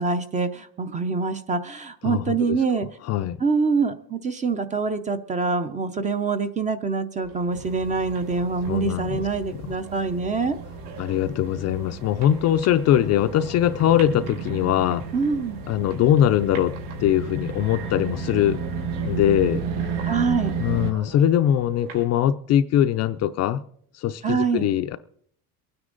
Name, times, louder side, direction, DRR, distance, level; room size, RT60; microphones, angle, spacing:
voice 1, 0.0-2.9 3.4-10.6 15.1-15.6 20.0-20.5 24.2-24.7, right 4 dB, 20° right, 0.5 m, -25 dB
voice 2, 2.0-2.6 3.0-3.4 8.7-9.2 11.0-15.0 15.7-18.6 19.0-19.6 20.6-23.6 23.9-25.0, left 11 dB, 40° left, 0.4 m, -22 dB
sound 1, 7.2-22.0, right 4 dB, 55° right, 3.9 m, -44 dB
sound 2, 7.5-20.9, right 5 dB, 90° right, 1.6 m, -33 dB
23.0 x 9.7 x 3.8 m
cardioid pair, 170°, 41 cm